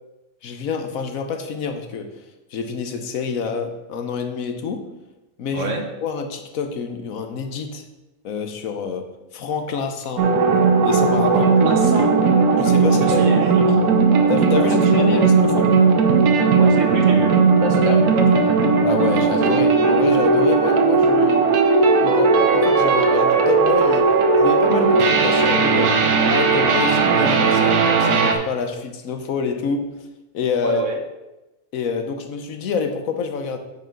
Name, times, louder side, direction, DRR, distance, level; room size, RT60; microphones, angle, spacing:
voice 1, 0.4-2.1 2.5-4.9 5.4-7.8 8.2-9.0 9.3-10.3 10.8-11.5 12.6-13.5 14.3-15.7 17.9-18.0 18.8-21.5 22.0-24.1 24.4-26.0 26.3-29.9 30.3-30.9 31.7-33.6, left 5 dB, 70° left, 6 dB, 1.3 m, -27 dB
voice 2, 5.5-5.8 11.3-12.1 13.0-13.6 14.6-14.7 14.9-15.2 16.6-18.3 30.6-31.0, right 4 dB, 60° right, 4 dB, 1.2 m, -26 dB
sound 1, 10.2-28.4, right 4 dB, 85° right, 1.4 m, -16 dB
9.2 x 5.5 x 3.8 m, 1.0 s
omnidirectional pair, 1.5 m